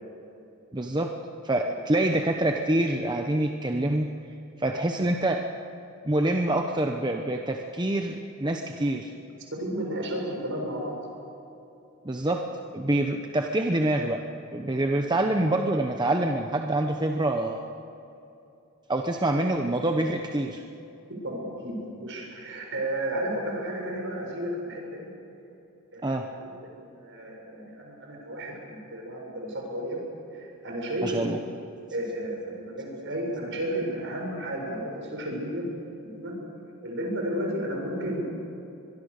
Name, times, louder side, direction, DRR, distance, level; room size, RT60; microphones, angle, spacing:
voice 1, 0.7-1.1 1.4-4.1 4.6-5.4 6.0-9.1 12.0-14.2 14.5-17.7 18.9-20.6 26.0-26.3 31.0-31.4, right 1 dB, 20° right, 3 dB, 1.0 m, -26 dB
voice 2, 9.6-11.0 21.2-25.1 25.9-26.5 26.8-30.0 30.3-31.3 31.9-35.6 36.0-36.3 36.8-38.3, right 1 dB, 55° right, 0 dB, 7.1 m, -33 dB
24.0 x 22.5 x 6.7 m, 2.8 s
head